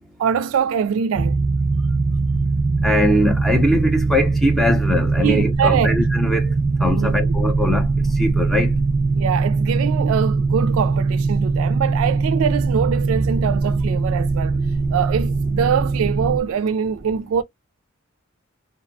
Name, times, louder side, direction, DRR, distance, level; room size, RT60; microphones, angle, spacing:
voice 1, 0.2-1.4 5.2-6.0 7.0-7.4 9.1-14.6 14.9-17.4, right 7 dB, 75° right, 0.3 m, -23 dB
sound 1, 1.1-16.4, right 3 dB, 45° right, 0.7 m, -21 dB
voice 2, 2.8-6.5 6.8-7.9 8.2-8.7, left 1 dB, ahead, 0.5 m, -21 dB
2.6 x 2.1 x 2.5 m
head